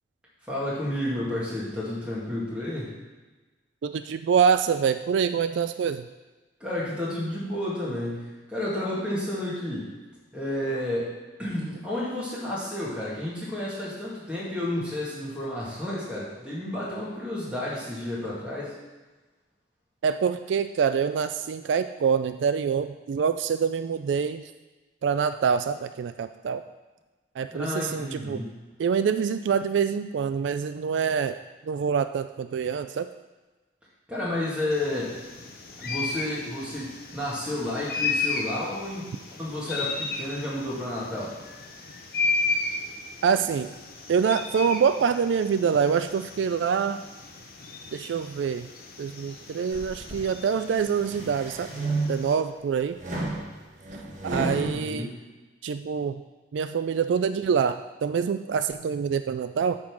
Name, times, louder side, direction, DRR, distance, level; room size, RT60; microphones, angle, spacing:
voice 1, 0.5-3.0 6.6-9.9 10.3-11.1 11.4-18.8 27.5-28.6 34.1-35.2 35.8-39.1 39.4-41.4 54.3-55.2, left 1 dB, 5° right, -8 dB, 2.1 m, -31 dB
voice 2, 3.8-6.1 20.0-24.5 25.0-26.6 27.4-28.4 28.8-31.4 31.6-33.1 43.2-43.7 44.1-47.0 47.9-48.7 49.0-51.7 52.1-53.0 54.2-55.1 55.6-56.2 56.5-59.8, right 6 dB, 80° right, 10 dB, 0.3 m, -25 dB
sound 1, 34.7-52.4, left 4 dB, 50° left, 0.8 m, -34 dB
sound 2, 49.7-50.3 50.8-52.4 53.0-54.7, right 2 dB, 45° right, 1.2 m, -32 dB
8.6 x 3.7 x 6.2 m, 1.2 s
head